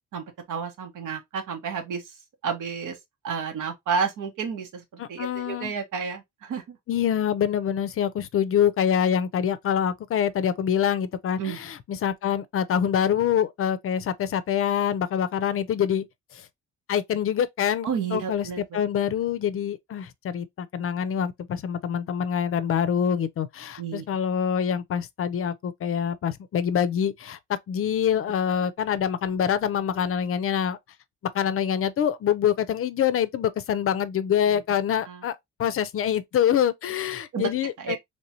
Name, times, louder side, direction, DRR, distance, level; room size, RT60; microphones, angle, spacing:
voice 1, 0.1-2.1 2.4-3.0 3.2-6.8 11.4-11.6 17.8-18.8 23.8-24.0 28.5-28.6 34.5-34.6 35.0-35.3 37.3-37.5 37.8-38.0, right 6 dB, 85° right, 1.1 m, -31 dB
voice 2, 5.0-5.7 6.9-16.1 16.3-16.5 16.9-18.5 18.7-27.4 27.7-30.8 31.3-38.0, left 9 dB, 50° left, 0.5 m, -25 dB
3.1 x 3.0 x 2.7 m
cardioid pair, 90°, 30 cm